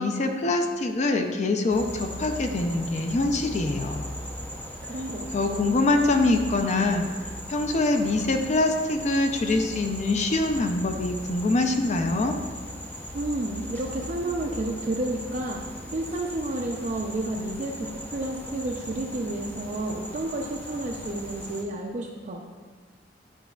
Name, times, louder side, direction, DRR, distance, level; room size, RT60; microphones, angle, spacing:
voice 1, 0.0-4.0 5.3-7.1 7.5-12.3, left 2 dB, 40° left, 5 dB, 0.4 m, -24 dB
sound 1, 1.7-21.6, equal, 10° left, 0.7 m, -38 dB
voice 2, 4.8-5.7 13.1-15.6 15.9-22.4, right 2 dB, 40° right, 0 dB, 0.4 m, -31 dB
9.0 x 5.1 x 2.3 m, 1.5 s
head